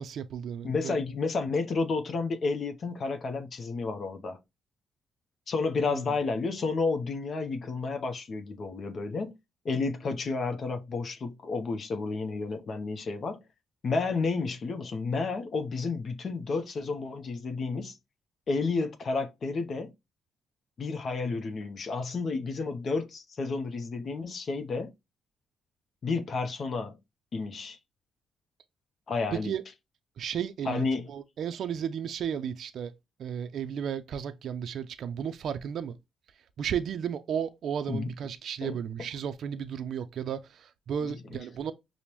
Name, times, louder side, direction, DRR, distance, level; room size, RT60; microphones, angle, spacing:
voice 1, 0.0-1.0 5.8-6.1 29.3-29.6 30.2-32.9 33.2-36.0 36.6-41.7, right 8 dB, 65° right, 0.4 m, -34 dB
voice 2, 0.6-4.4 5.5-9.4 9.6-13.4 13.8-17.9 18.5-19.9 20.8-24.9 26.0-27.0 27.3-27.8 29.1-29.5 30.6-31.1 37.9-38.1 38.6-38.8, left 4 dB, 50° left, 0.6 m, -31 dB
5.1 x 2.0 x 2.9 m
cardioid pair, 90°, 0 cm